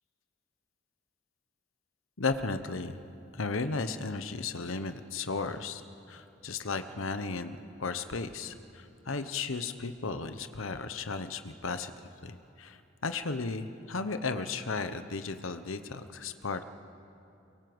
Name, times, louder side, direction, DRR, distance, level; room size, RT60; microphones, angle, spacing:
voice 1, 2.2-3.0 3.3-5.8 6.1-11.9 12.2-16.6, left 4 dB, 75° left, 10 dB, 1.0 m, -35 dB
24.0 x 22.0 x 8.0 m, 2.7 s
head